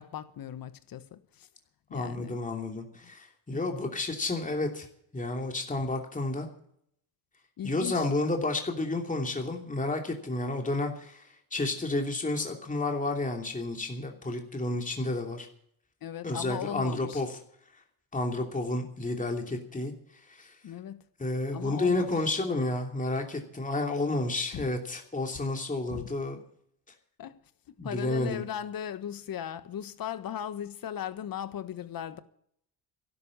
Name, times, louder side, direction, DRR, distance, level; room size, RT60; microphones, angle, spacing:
voice 1, 0.0-1.5 1.9-2.4 3.5-3.7 7.6-8.1 16.0-17.2 20.6-21.0 21.5-22.1 24.5-24.7 25.9-26.1 27.2-27.4 27.8-32.2, left 9 dB, 50° left, 1.4 m, -38 dB
voice 2, 1.9-4.9 5.1-6.5 7.6-15.5 16.2-17.3 18.1-19.9 20.3-20.6 21.2-26.4 27.8-28.4, left 2 dB, 20° left, 2.9 m, -31 dB
12.0 x 11.5 x 8.6 m
supercardioid pair, 70°, 43 cm